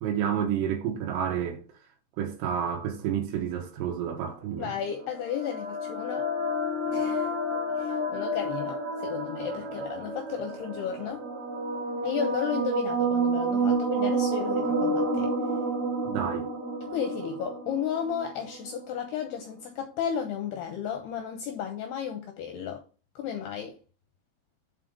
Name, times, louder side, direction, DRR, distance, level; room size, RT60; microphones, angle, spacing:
voice 1, 0.0-1.6 2.2-4.7 16.1-16.5, right 9 dB, 85° right, 3.9 m, -30 dB
voice 2, 4.6-6.3 6.9-7.3 7.8-11.2 12.0-15.3 16.9-22.8 23.2-23.8, left 8 dB, 80° left, 2.3 m, -33 dB
sound 1, 4.6-18.7, right 2 dB, 60° right, 1.9 m, -30 dB
8.4 x 3.8 x 5.1 m
omnidirectional pair, 5.7 m